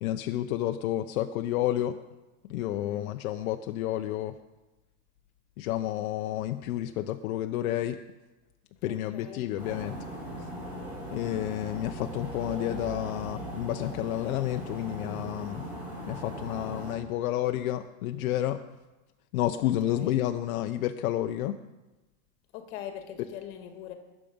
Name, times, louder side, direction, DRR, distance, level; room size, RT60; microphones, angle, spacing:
voice 1, 0.0-2.0 2.5-4.3 5.6-8.0 8.8-10.0 11.1-15.6 16.1-18.6 19.3-21.6, left 13 dB, 80° left, 7 dB, 0.8 m, -30 dB
voice 2, 2.8-3.3 8.9-9.5 19.6-20.2 22.5-23.9, left 10 dB, 50° left, 6 dB, 1.9 m, -43 dB
sound 1, 9.6-16.9, right 1 dB, 5° right, 4.3 m, -39 dB
21.0 x 7.5 x 5.2 m, 1.1 s
supercardioid pair, 180°, 42 cm